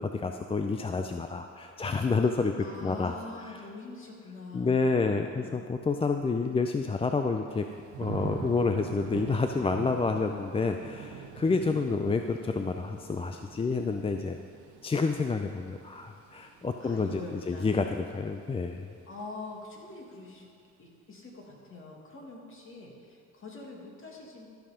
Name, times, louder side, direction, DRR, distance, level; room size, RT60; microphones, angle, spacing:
voice 1, 0.0-2.5 2.8-3.1 4.5-7.6 8.0-14.4 14.8-17.2 17.5-18.9, left 4 dB, 20° left, 5 dB, 0.4 m, -29 dB
voice 2, 2.6-5.7 16.8-17.7 19.1-20.5 20.8-24.5, left 3 dB, 45° left, -1 dB, 2.1 m, -44 dB
Thunder / Rain, 7.5-18.4 18.8-19.3, right 7 dB, 75° right, 1.0 m, -44 dB
13.5 x 5.6 x 5.0 m, 2.2 s
cardioid pair, 90°, 30 cm